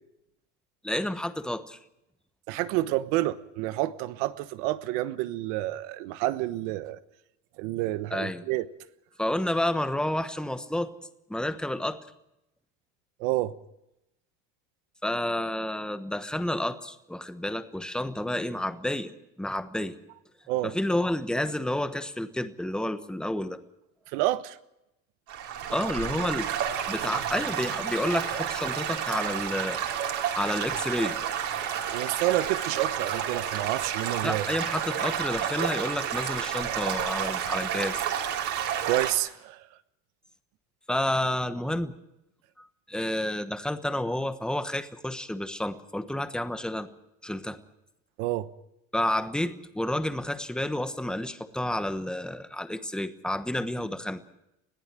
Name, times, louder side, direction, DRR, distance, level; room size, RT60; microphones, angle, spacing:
voice 1, 0.8-1.8 8.1-8.4 9.2-10.9 11.3-12.0 15.0-19.1 19.4-20.0 20.6-23.6 25.7-29.8 30.3-31.2 34.2-38.0 40.9-41.9 42.6-46.9 47.2-47.6 48.9-54.2, left 1 dB, ahead, 9 dB, 1.1 m, -30 dB
voice 2, 2.5-7.0 7.6-8.7 13.2-13.5 20.5-20.7 24.1-24.6 31.9-34.4 38.4-38.5 38.8-39.7 48.2-48.5, right 16 dB, 75° right, 13 dB, 1.2 m, -29 dB
Stream / Gurgling / Trickle dribble, 25.3-39.1, right 9 dB, 50° right, 3.6 m, -30 dB
21.0 x 14.5 x 9.0 m, 0.86 s
cardioid pair, 135°, 37 cm